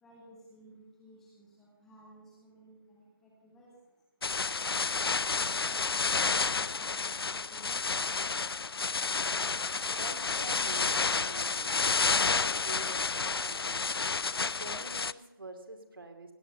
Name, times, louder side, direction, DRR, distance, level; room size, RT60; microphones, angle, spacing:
voice 1, 0.0-3.7 4.6-8.0, right 1 dB, 5° left, -5 dB, 1.2 m, -56 dB
sound 1, 4.2-15.1, left 4 dB, 80° left, 0.5 m, -30 dB
voice 2, 9.9-13.9 14.6-16.3, right 2 dB, 65° right, 5 dB, 2.7 m, -46 dB
17.5 x 9.4 x 6.8 m, 1.1 s
figure-of-eight pair, 175°, 12 cm